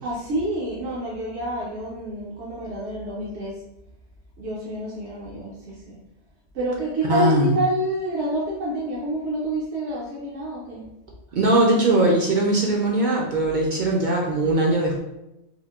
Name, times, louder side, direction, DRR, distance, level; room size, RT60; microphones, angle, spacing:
voice 1, 0.0-3.6 4.4-6.0 6.5-10.8, right 1 dB, 80° right, -5 dB, 0.9 m, -28 dB
voice 2, 7.0-7.6 11.3-15.0, right 1 dB, 60° right, -2 dB, 0.5 m, -20 dB
3.6 x 2.0 x 2.3 m, 0.90 s
omnidirectional pair, 1.2 m